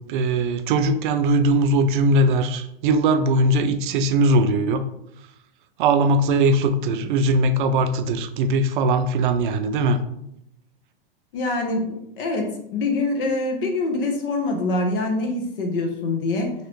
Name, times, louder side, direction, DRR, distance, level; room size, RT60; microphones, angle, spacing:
voice 1, 0.1-4.8 5.8-10.0, right 2 dB, 55° right, 9 dB, 0.4 m, -20 dB
voice 2, 11.3-16.5, left 2 dB, 65° left, 3 dB, 1.0 m, -25 dB
3.0 x 2.8 x 3.0 m, 0.77 s
hypercardioid pair, 125°, 30 cm